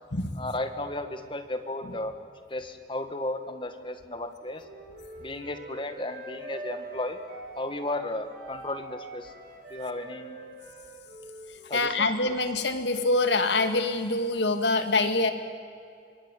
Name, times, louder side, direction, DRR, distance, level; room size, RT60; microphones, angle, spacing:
voice 1, 0.4-2.1 2.5-4.6 5.2-7.2 7.6-9.3 9.7-10.4 11.7-12.1, left 2 dB, 25° left, 8 dB, 1.8 m, -34 dB
Wind instrument woodwind instrument, 4.5-11.9, right 2 dB, 50° right, 5.8 m, -44 dB
voice 2, 11.7-15.3, left 2 dB, 65° left, 8 dB, 2.2 m, -25 dB
25.5 x 22.5 x 9.3 m, 2.4 s
head